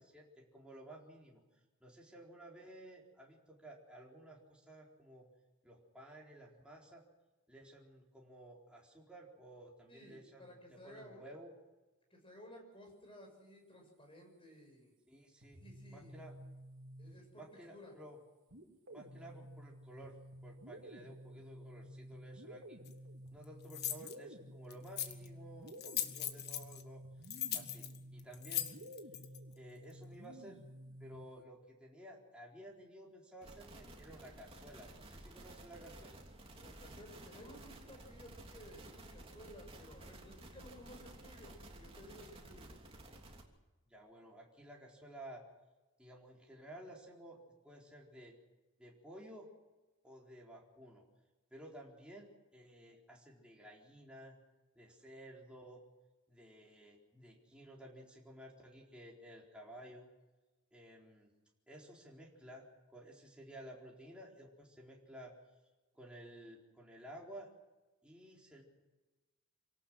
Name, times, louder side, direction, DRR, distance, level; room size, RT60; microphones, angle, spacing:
voice 1, 0.0-1.4 1.8-5.3 5.6-7.0 7.5-11.5 15.1-15.6 15.9-16.3 17.3-18.2 18.9-20.2 20.4-22.8 23.3-27.0 27.5-28.9 29.6-30.6 31.0-36.2 43.9-45.4 46.0-47.4 47.6-48.3 48.8-49.5 50.0-51.0 51.5-54.4 54.8-55.8 56.3-60.1 60.7-61.3 61.7-65.3 65.9-67.5 68.0-68.6, right 1 dB, 5° right, -3 dB, 4.3 m, -54 dB
voice 2, 9.9-11.3 12.1-14.9 15.6-16.2 17.0-17.9 36.5-42.8, left 1 dB, 25° left, 2 dB, 6.7 m, -56 dB
sound 1, 15.4-17.5 18.5-31.4, equal, 60° right, 2.9 m, -52 dB
sound 2, 22.9-23.0 23.7-24.1 24.7-25.3 25.7-26.8 27.2-29.4, left 11 dB, 50° left, 1.6 m, -39 dB
sound 3, 33.4-43.4, right 1 dB, 25° right, 3.1 m, -54 dB
27.0 x 18.0 x 6.3 m, 1.2 s
head